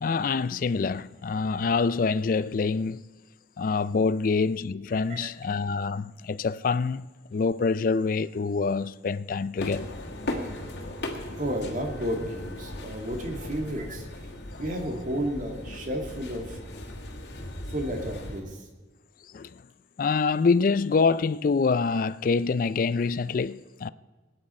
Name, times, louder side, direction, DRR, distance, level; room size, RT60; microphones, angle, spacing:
voice 1, 0.0-3.0 3.6-9.9 19.3-19.6 20.0-23.9, left 4 dB, 50° left, 0.4 m, -26 dB
sound 1, 9.6-18.4, left 1 dB, 70° left, 1.9 m, -37 dB
voice 2, 11.4-14.1 14.6-16.6 17.7-18.6, equal, 45° right, 2.0 m, -32 dB
18.5 x 9.8 x 4.3 m
head